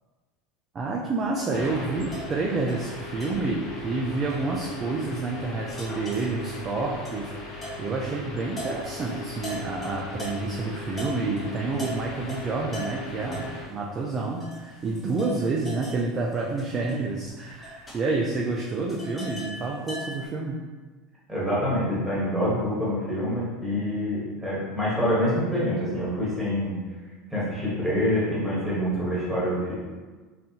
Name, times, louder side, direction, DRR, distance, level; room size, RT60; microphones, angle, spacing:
voice 1, 0.7-20.6, right 3 dB, 20° right, -2 dB, 0.3 m, -29 dB
sound 1, 1.2-10.6 10.9-20.3, equal, 15° left, 0.8 m, -41 dB
sound 2, 1.5-13.6, left 2 dB, 60° left, 1.3 m, -39 dB
voice 2, 21.3-26.8 27.3-29.7, equal, 5° right, -9 dB, 1.2 m, -26 dB
4.0 x 3.7 x 2.8 m, 1.4 s
cardioid pair, 175°, 0 cm